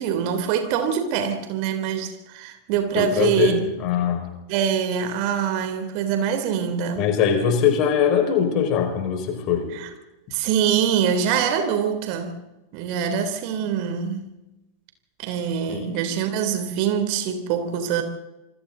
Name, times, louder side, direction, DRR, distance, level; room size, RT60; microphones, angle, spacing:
voice 1, 0.0-3.7 4.5-7.1 9.7-9.9 10.3-12.4 12.7-14.3 15.2-18.0, right 8 dB, 45° right, 3.3 m, -24 dB
voice 2, 2.9-4.4 7.0-9.7 15.7-15.9, left 7 dB, 40° left, 5.1 m, -22 dB
27.5 x 25.0 x 4.0 m
figure-of-eight pair, 90°, 0 cm